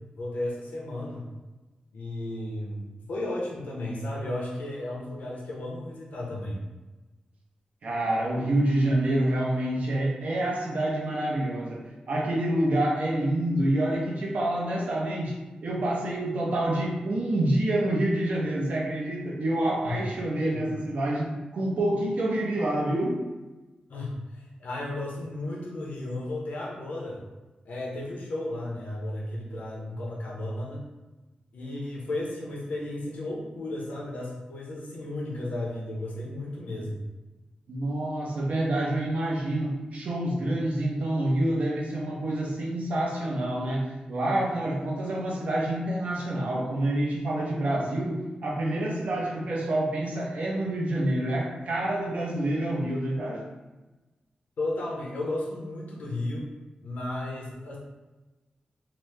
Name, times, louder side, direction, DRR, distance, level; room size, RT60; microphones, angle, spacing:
voice 1, 0.2-1.3 1.9-6.6 19.8-19.9 20.4-20.7 23.9-27.2 27.6-30.8 31.5-37.0 54.6-56.5 56.8-57.8, left 1 dB, 85° left, -3 dB, 0.7 m, -34 dB
voice 2, 7.8-23.2 37.7-53.4, right 1 dB, 65° right, -2 dB, 0.6 m, -27 dB
2.9 x 2.1 x 3.3 m, 1.1 s
wide cardioid pair, 165°, 3 cm